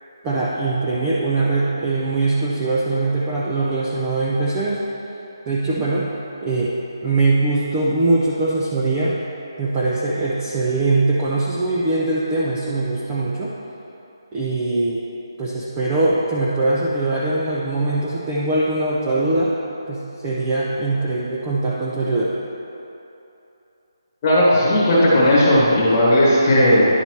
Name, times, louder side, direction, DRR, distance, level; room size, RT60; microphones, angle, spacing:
voice 1, 0.2-4.8 5.5-6.1 6.4-6.7 7.0-9.2 9.6-13.5 14.3-15.0 15.4-19.6 19.9-22.3, right 2 dB, 10° right, -6 dB, 0.3 m, -21 dB
voice 2, 24.2-26.9, left 1 dB, 15° left, -8 dB, 1.4 m, -15 dB
10.5 x 4.0 x 4.5 m, 2.9 s
hypercardioid pair, 175°, 2 cm